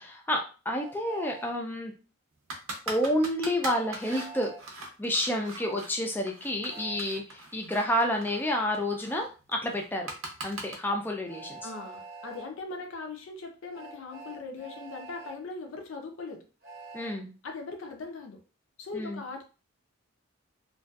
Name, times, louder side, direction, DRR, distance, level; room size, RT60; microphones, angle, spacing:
voice 1, 0.0-1.9 2.9-4.5 5.0-10.1 10.4-11.6 16.9-17.3 18.9-19.2, left 1 dB, 10° left, 2 dB, 0.3 m, -29 dB
Train, 0.7-1.5 3.6-4.6 6.7-7.0 9.1-9.2 11.3-12.5 13.7-15.4 16.6-17.1, right 3 dB, 45° right, 0.7 m, -45 dB
sound 1, 2.5-5.9 6.3-10.8, right 2 dB, 85° right, 0.6 m, -41 dB
voice 2, 11.6-16.5 17.4-18.4 18.8-19.4, left 3 dB, 70° left, 3 dB, 0.5 m, -40 dB
2.5 x 2.3 x 2.3 m, 0.34 s
head